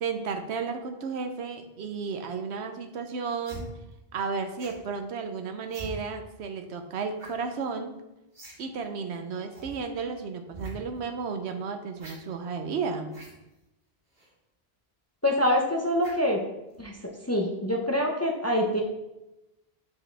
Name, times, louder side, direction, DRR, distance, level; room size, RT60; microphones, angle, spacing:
voice 1, 0.0-3.7 4.1-7.9 8.6-13.1, right 5 dB, 90° right, 6 dB, 1.0 m, -33 dB
sound 1, 3.4-3.7 4.6-4.8 5.7-5.9 7.2-7.4 7.6-7.7 8.3-8.6 8.8-8.9 9.5-9.7 10.5-10.7 12.0-12.2 13.1-13.3 14.1-14.3 16.0-16.3 16.7-16.9, right 2 dB, 65° right, 2.3 m, -43 dB
voice 2, 15.2-16.4 16.8-16.9 17.3-18.8, left 1 dB, 20° left, 0 dB, 0.5 m, -25 dB
6.8 x 4.9 x 3.3 m, 0.95 s
omnidirectional pair, 1.1 m